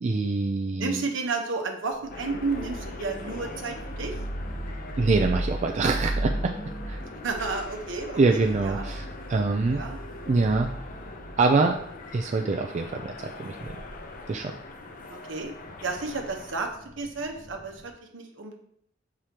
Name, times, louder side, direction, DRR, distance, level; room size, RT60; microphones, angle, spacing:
voice 1, 0.0-1.1 5.0-6.5 6.9-7.0 8.2-9.8 10.3-10.7 11.4-11.8 12.1-13.7 14.3-14.6, right 3 dB, 35° right, 3 dB, 0.4 m, -25 dB
voice 2, 0.8-4.1 7.2-8.9 9.7-10.0 15.1-15.5 15.8-18.5, right 3 dB, 70° right, 3 dB, 1.0 m, -32 dB
sound 1, 1.9-17.9, right 1 dB, 90° left, 1.8 m, -37 dB
sound 2, 2.1-16.6, left 3 dB, 45° left, 0.6 m, -43 dB
7.4 x 4.9 x 2.9 m, 0.69 s
head